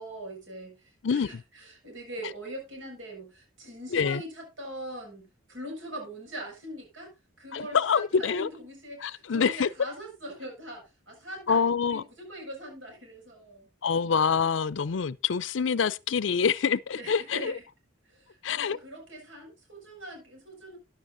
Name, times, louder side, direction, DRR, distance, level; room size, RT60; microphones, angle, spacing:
voice 1, 0.0-7.1 7.4-13.7 17.0-17.6 18.1-20.8, right 1 dB, 80° right, 6.0 m, -42 dB
voice 2, 3.9-4.2 7.5-8.5 9.0-9.7 11.5-12.0 13.8-17.5 18.4-18.8, left 6 dB, 70° left, 0.5 m, -26 dB
13.5 x 10.5 x 2.6 m
head